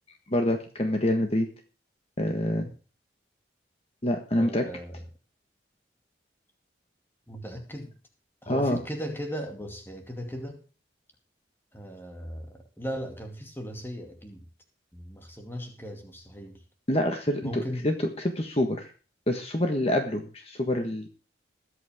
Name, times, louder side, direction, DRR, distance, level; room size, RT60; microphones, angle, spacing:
voice 1, 0.3-1.5 2.2-2.6 4.0-4.6 8.5-8.8 16.9-17.9 18.3-18.9 19.3-21.1, left 1 dB, 35° left, 4 dB, 1.5 m, -26 dB
voice 2, 4.4-5.1 7.3-7.9 8.4-10.6 11.7-14.5 14.9-16.6 17.4-17.9, equal, 10° left, 3 dB, 2.4 m, -37 dB
21.0 x 8.5 x 3.7 m, 0.37 s
head